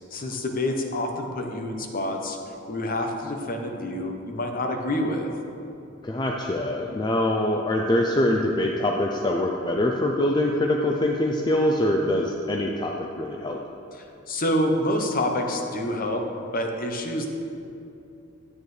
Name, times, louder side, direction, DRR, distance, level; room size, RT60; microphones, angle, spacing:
voice 1, 0.1-2.4 2.7-5.3 14.0-16.2 16.5-17.3, left 1 dB, 45° left, 3 dB, 0.8 m, -27 dB
voice 2, 6.0-13.6, left 1 dB, 20° left, 1 dB, 0.4 m, -24 dB
9.1 x 8.5 x 3.2 m, 2.7 s
head